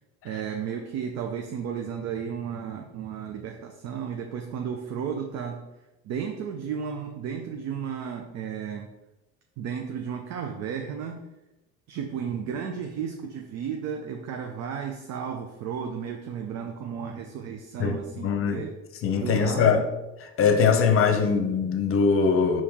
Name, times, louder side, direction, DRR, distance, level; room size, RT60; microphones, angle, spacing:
voice 1, 0.2-5.7 6.0-8.9 9.6-11.3 11.9-18.7 19.2-19.9, right 7 dB, 60° right, 3 dB, 0.6 m, -33 dB
voice 2, 18.2-18.6 19.0-19.8 20.4-22.6, left 5 dB, 45° left, 6 dB, 0.7 m, -21 dB
4.5 x 3.0 x 3.5 m, 0.99 s
supercardioid pair, 90°, 30 cm